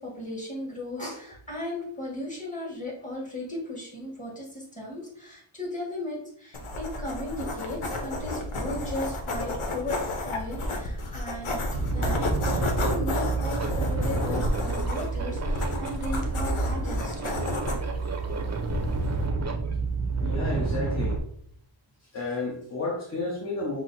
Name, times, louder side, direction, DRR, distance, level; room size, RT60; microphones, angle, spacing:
voice 1, 0.0-10.0 10.2-11.6 11.9-17.4, left 1 dB, 15° left, -3 dB, 1.6 m, -36 dB
sound 1, 6.5-19.3, left 2 dB, 75° left, 0.9 m, -32 dB
sound 2, 10.8-10.9 11.3-21.2, right 4 dB, 35° right, 0.6 m, -29 dB
voice 2, 20.2-21.2 22.1-23.8, left 2 dB, 30° left, -3 dB, 0.9 m, -31 dB
6.0 x 2.0 x 4.1 m, 0.64 s
wide cardioid pair, 135°, 49 cm